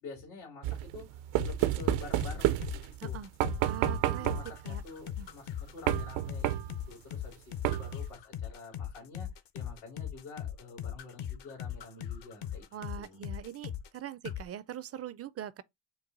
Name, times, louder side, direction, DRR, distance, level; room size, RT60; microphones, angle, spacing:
voice 1, 0.0-1.1 1.4-3.2 4.0-9.3 9.5-12.7 13.0-13.2, left 4 dB, 85° left, 2.5 m, -48 dB
sound 1, 0.6-3.0 3.4-4.6 5.9-6.9 7.6-8.1, right 14 dB, 75° right, 0.6 m, -30 dB
sound 2, 1.4-14.0 14.3-14.5, left 10 dB, 60° left, 0.8 m, -39 dB
voice 2, 3.6-4.4 4.6-4.8 5.2-5.3 12.7-15.6, right 10 dB, 35° right, 0.4 m, -42 dB
4.7 x 2.3 x 3.8 m
supercardioid pair, 80°, 47 cm